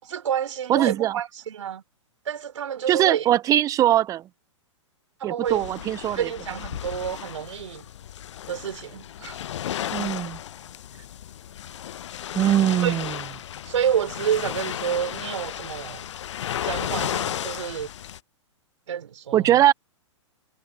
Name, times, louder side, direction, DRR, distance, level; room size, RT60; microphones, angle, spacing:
voice 1, 0.0-1.8 2.3-3.3 5.2-5.8 6.2-7.9 8.5-9.4 12.8-13.0 13.7-16.0 16.6-17.9 18.9-19.5, right 9 dB, 70° right, 3.6 m, -29 dB
voice 2, 0.7-1.2 2.9-4.2 5.2-6.3 9.9-10.4 12.4-13.2 19.3-19.7, right 12 dB, 20° right, 0.5 m, -21 dB
sound 1, 5.5-18.2, left 11 dB, 70° left, 0.6 m, -34 dB
hypercardioid pair, 120°, 16 cm